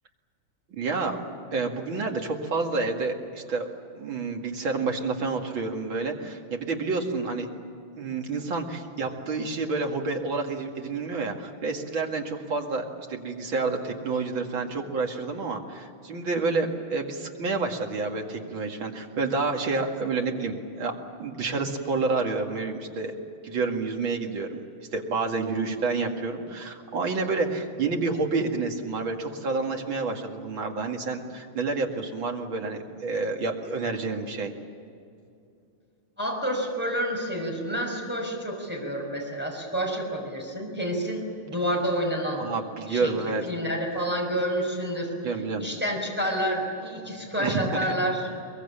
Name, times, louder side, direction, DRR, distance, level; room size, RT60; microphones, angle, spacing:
voice 1, 0.7-1.2 1.5-3.7 4.0-7.5 8.0-23.1 23.4-24.6 24.9-34.5 42.4-43.4 45.2-45.7 47.4-47.9, right 3 dB, 65° right, 2 dB, 2.9 m, -29 dB
voice 2, 36.2-42.5 42.9-45.1 45.6-48.3, equal, 5° right, -1 dB, 5.5 m, -29 dB
23.0 x 22.5 x 8.7 m, 2.5 s
omnidirectional pair, 2.3 m